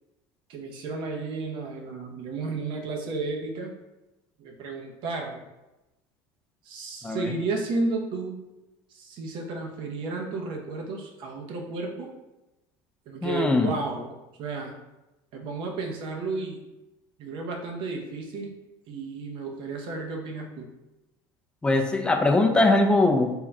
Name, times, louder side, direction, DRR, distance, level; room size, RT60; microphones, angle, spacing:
voice 1, 0.5-3.7 4.4-5.4 6.6-8.4 8.9-12.1 13.1-14.8 15.3-16.6 17.2-18.5 18.9-20.7, right 3 dB, 55° right, 1 dB, 0.8 m, -33 dB
voice 2, 13.2-13.7 21.6-23.3, left 2 dB, 10° left, 2 dB, 0.4 m, -21 dB
3.6 x 2.3 x 4.1 m, 1.0 s
cardioid pair, 140°, 10 cm